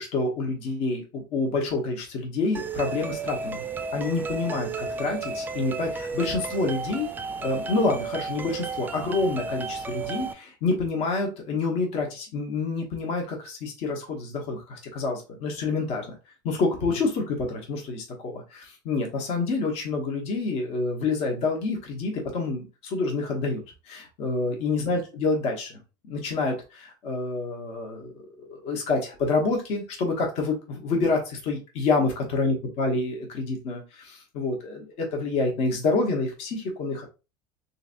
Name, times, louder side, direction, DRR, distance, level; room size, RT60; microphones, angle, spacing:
voice 1, 0.0-3.6 3.9-7.1 7.4-16.1 16.4-23.6 23.9-25.7 26.0-28.1 28.4-37.1, left 3 dB, 60° left, 1 dB, 1.1 m, -28 dB
sound 1, 2.5-10.3, right 4 dB, 15° right, 0.4 m, -33 dB
3.0 x 2.7 x 2.5 m, 0.30 s
supercardioid pair, 105°, 12 cm